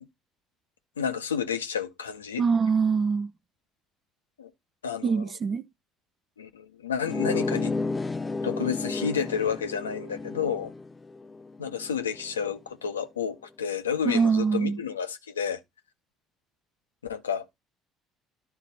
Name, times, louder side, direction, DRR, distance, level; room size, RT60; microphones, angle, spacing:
voice 1, 1.0-2.4 4.4-4.5 4.8-5.2 6.4-7.7 8.4-10.7 11.6-15.6 17.0-17.5, left 7 dB, 90° left, 0.6 m, -30 dB
voice 2, 2.4-3.3 5.0-5.6 14.0-14.8, right 5 dB, 40° right, 0.6 m, -24 dB
sound 1, 7.0-12.3, left 3 dB, 25° left, 0.5 m, -32 dB
12.0 x 4.0 x 4.1 m
hypercardioid pair, 55°, 0 cm